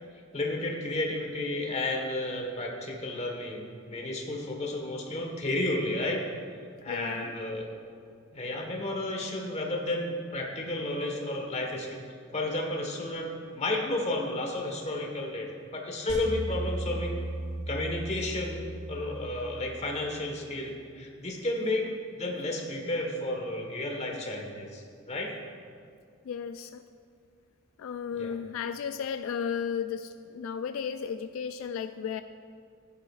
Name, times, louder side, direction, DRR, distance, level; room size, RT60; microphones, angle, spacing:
voice 1, 0.3-6.2 6.8-7.7 8.3-12.0 12.3-15.5 15.7-17.2 17.7-18.6 18.9-21.9 22.1-25.3 28.1-28.3, left 2 dB, 35° left, 1 dB, 1.4 m, -32 dB
voice 2, 6.9-7.3 26.3-26.8 27.8-32.2, left 7 dB, 85° left, 10 dB, 0.3 m, -34 dB
sound 1, 16.1-20.4, right 2 dB, 40° right, 1.6 m, -37 dB
14.0 x 10.0 x 2.5 m, 2.2 s
head